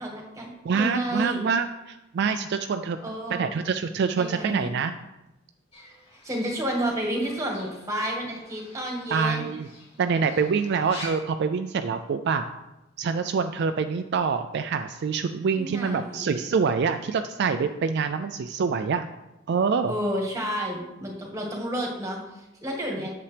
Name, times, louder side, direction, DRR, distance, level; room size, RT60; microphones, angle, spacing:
voice 1, 0.0-1.4 3.0-3.6 4.2-4.7 6.2-9.5 15.5-16.2 19.9-23.1, equal, 15° right, 0 dB, 1.7 m, -31 dB
voice 2, 0.6-3.0 3.3-5.0 9.1-9.7 10.0-12.5 13.0-19.1 19.5-19.9, right 5 dB, 55° right, 8 dB, 0.3 m, -26 dB
Fowl / Bird, 5.7-11.1, left 1 dB, 30° left, 2.2 m, -47 dB
8.4 x 6.8 x 3.4 m, 0.96 s
head